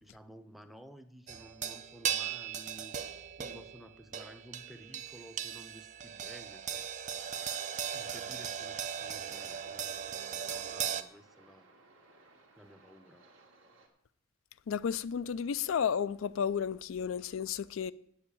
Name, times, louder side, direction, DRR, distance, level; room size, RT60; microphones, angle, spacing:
voice 1, 0.0-6.9 7.9-11.7 12.6-13.3, equal, ahead, 0.7 m, -54 dB
sound 1, 1.3-11.0, right 8 dB, 40° right, 0.5 m, -38 dB
sound 2, 7.1-13.9, right 3 dB, 80° right, 2.2 m, -61 dB
voice 2, 14.7-17.9, left 7 dB, 80° left, 0.4 m, -32 dB
8.7 x 7.2 x 8.6 m
head